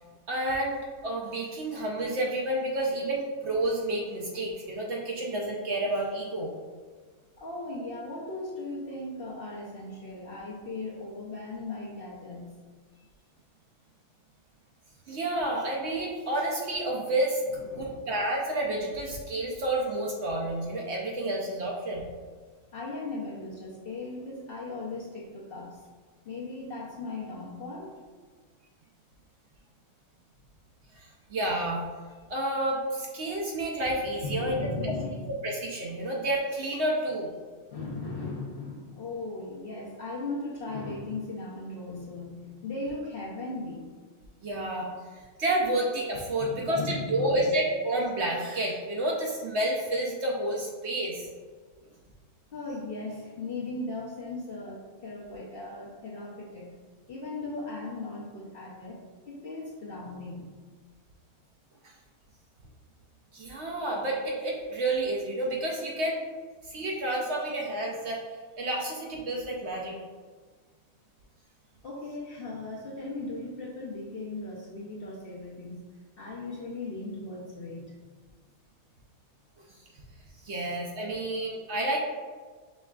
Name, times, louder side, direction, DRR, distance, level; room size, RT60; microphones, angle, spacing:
voice 1, 0.3-6.5 15.1-22.1 30.9-31.8 32.3-34.9 35.4-37.3 44.4-51.3 63.3-66.2 66.6-68.2 68.6-69.9 80.4-82.0, right 1 dB, 60° right, -1 dB, 0.8 m, -30 dB
voice 2, 7.4-12.6 17.7-18.0 22.7-25.8 26.2-27.9 34.2-35.3 37.7-43.9 46.4-47.6 52.5-56.8 57.1-59.0 59.3-60.6 71.8-75.9 76.2-78.0, left 2 dB, 55° left, -5 dB, 0.7 m, -37 dB
5.4 x 3.3 x 2.3 m, 1.5 s
omnidirectional pair, 1.5 m